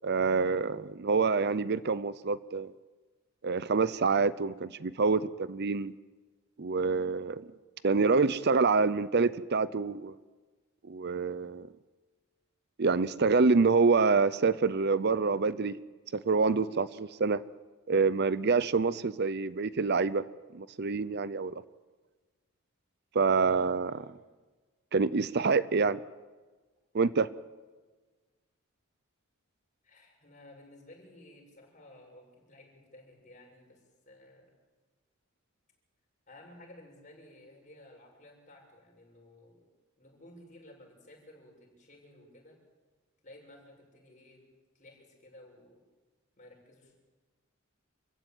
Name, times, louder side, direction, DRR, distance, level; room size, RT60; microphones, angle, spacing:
voice 1, 0.0-2.7 3.4-5.9 6.6-7.4 7.8-10.2 10.9-11.7 12.8-15.8 16.1-17.4 17.9-20.2 20.5-21.5 23.1-24.0 24.9-26.0 26.9-27.3, right 4 dB, 50° right, 17 dB, 0.6 m, -26 dB
voice 2, 29.8-34.5 36.3-39.7 40.0-42.6 43.2-44.5 44.7-45.8 46.4-47.0, left 1 dB, 35° left, 0 dB, 7.4 m, -55 dB
27.5 x 16.0 x 9.1 m, 1.3 s
head